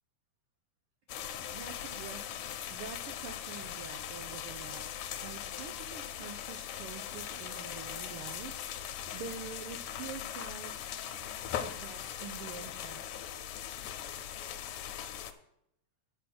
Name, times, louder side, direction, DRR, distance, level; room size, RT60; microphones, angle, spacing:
sound 1, 1.1-15.3, left 10 dB, 80° left, 2.0 m, -40 dB
voice 1, 1.2-4.9 5.2-8.5 8.8-10.8 11.6-13.1, right 6 dB, 90° right, 5 dB, 1.2 m, -46 dB
9.9 x 5.4 x 6.0 m, 0.75 s
omnidirectional pair, 3.4 m